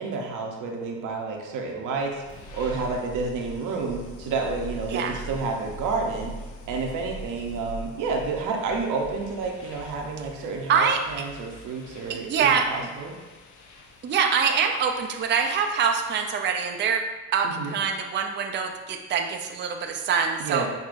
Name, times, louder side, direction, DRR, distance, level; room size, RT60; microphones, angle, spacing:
voice 1, 0.0-6.3 6.7-13.1 17.4-17.8 20.4-20.7, right 4 dB, 85° right, 1 dB, 0.8 m, -30 dB
sound 1, 1.7-16.3, equal, 75° left, 0.6 m, -43 dB
voice 2, 4.9-5.2 10.7-11.2 12.1-12.9 14.0-20.7, right 6 dB, 40° right, 4 dB, 0.4 m, -25 dB
6.2 x 2.7 x 2.5 m, 1.2 s
cardioid pair, 90°, 30 cm